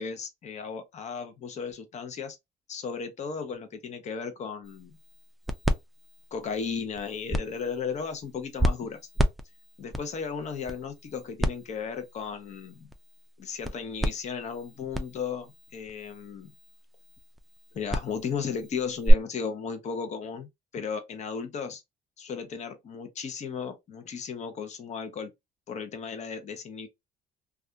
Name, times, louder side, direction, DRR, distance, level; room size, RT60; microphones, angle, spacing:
voice 1, 0.0-2.4 2.7-5.0 6.3-9.0 9.8-12.9 13.4-16.5 17.7-21.8 22.2-25.3 25.7-26.9, left 6 dB, 45° left, 0.7 m, -35 dB
sound 1, 4.6-19.1, equal, ahead, 0.4 m, -32 dB
2.7 x 2.3 x 2.2 m
cardioid pair, 110°, 17 cm